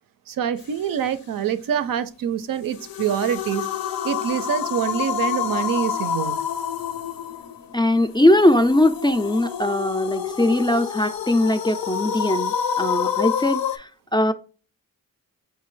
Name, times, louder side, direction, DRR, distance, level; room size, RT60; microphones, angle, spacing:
voice 1, 0.3-3.7 4.0-6.4, right 9 dB, 70° right, 0.5 m, -25 dB
sound 1, 2.7-13.8, left 8 dB, 75° left, 0.5 m, -28 dB
voice 2, 7.7-14.3, left 1 dB, 15° left, 0.3 m, -20 dB
5.5 x 2.2 x 3.1 m
cardioid pair, 65°, 35 cm